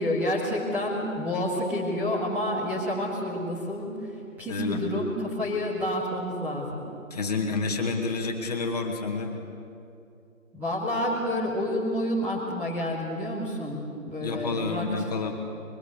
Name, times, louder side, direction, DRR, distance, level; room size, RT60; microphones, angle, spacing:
voice 1, 0.0-4.0 4.4-6.8 10.5-14.9, left 1 dB, 5° right, -7 dB, 1.9 m, -29 dB
voice 2, 4.5-4.8 7.1-9.4 14.2-15.3, left 4 dB, 30° left, 2 dB, 2.2 m, -29 dB
23.5 x 23.0 x 8.3 m, 2.5 s
figure-of-eight pair, 165°, 41 cm